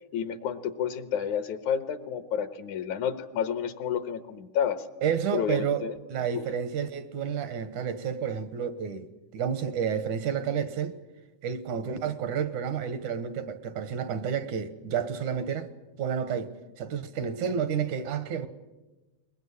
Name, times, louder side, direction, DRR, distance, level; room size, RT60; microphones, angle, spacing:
voice 1, 0.1-4.8 5.3-6.0, left 8 dB, 75° left, 2.6 m, -30 dB
voice 2, 5.0-5.8 6.1-11.0 11.4-15.7 16.0-18.5, right 7 dB, 80° right, 2.7 m, -30 dB
22.5 x 21.0 x 9.8 m
omnidirectional pair, 3.5 m